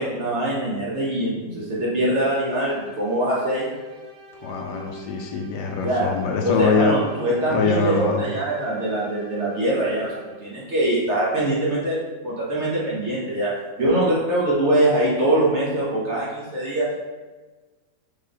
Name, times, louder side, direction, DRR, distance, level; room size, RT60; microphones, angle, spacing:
voice 1, 0.0-3.7 5.8-6.1 6.4-10.1 10.4-12.0 12.2-13.5 13.8-16.9, right 1 dB, 50° right, -6 dB, 0.9 m, -23 dB
sound 1, 2.2-10.6, right 3 dB, 80° right, 1.3 m, -44 dB
voice 2, 4.4-6.9 7.5-8.2, left 5 dB, 75° left, 1 dB, 1.1 m, -23 dB
3.6 x 3.3 x 3.7 m, 1.3 s
omnidirectional pair, 1.9 m